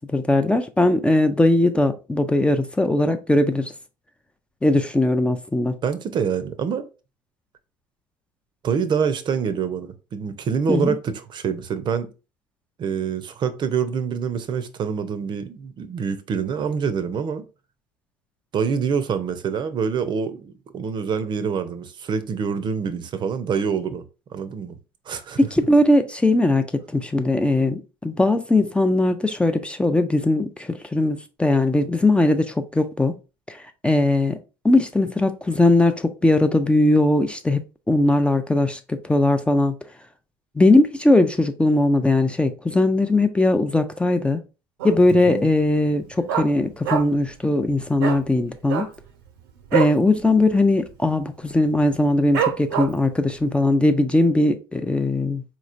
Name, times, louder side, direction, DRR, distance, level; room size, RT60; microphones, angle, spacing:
voice 1, 0.1-3.7 4.6-5.8 10.7-10.9 25.4-33.1 33.5-34.4 34.6-39.8 40.6-44.4 44.8-48.9 49.7-55.4, left 2 dB, 10° left, 0.5 m, -19 dB
voice 2, 5.8-6.9 8.6-12.1 12.8-17.4 18.5-24.0 24.3-24.8 25.1-25.7 45.3-45.5, right 6 dB, 40° right, 0.6 m, -26 dB
Dog, 44.8-45.2 45.5-45.6 45.9-47.3 47.6-47.7 48.0-48.2 48.6-50.0 50.4-50.5 50.8-51.2 51.7-51.8 52.3-53.1 53.6-53.7, right 8 dB, 75° right, 0.7 m, -25 dB
4.0 x 3.0 x 2.5 m
hypercardioid pair, 70°, 12 cm